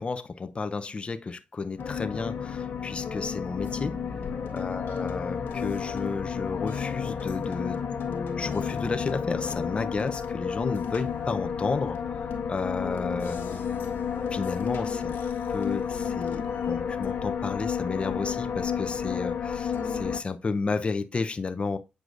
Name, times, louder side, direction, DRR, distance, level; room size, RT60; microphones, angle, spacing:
voice 1, 0.0-4.0 4.5-7.8 8.4-13.4 14.3-15.2 15.5-21.8, left 4 dB, 35° left, 0.6 m, -32 dB
sound 1, 1.8-20.2, left 7 dB, 80° left, 1.3 m, -31 dB
7.8 x 4.8 x 2.5 m
cardioid pair, 80°, 3 cm